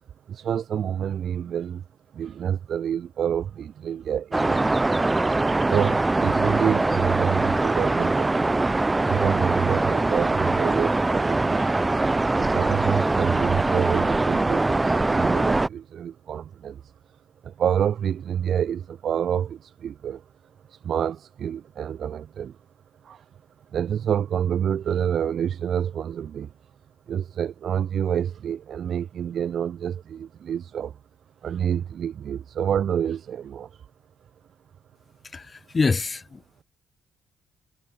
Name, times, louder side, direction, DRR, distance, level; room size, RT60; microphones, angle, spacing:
voice 1, 0.3-1.8 2.1-4.8 5.6-8.4 9.0-11.8 12.3-16.9 17.4-20.2 20.7-22.6 23.0-23.2 23.7-26.5 27.1-31.0 31.4-33.9, right 9 dB, 60° right, 3.0 m, -28 dB
sound 1, 4.3-15.7, right 2 dB, 15° right, 4.2 m, -22 dB
voice 2, 35.2-36.6, left 4 dB, 30° left, 2.6 m, -26 dB
cardioid pair, 90°, 0 cm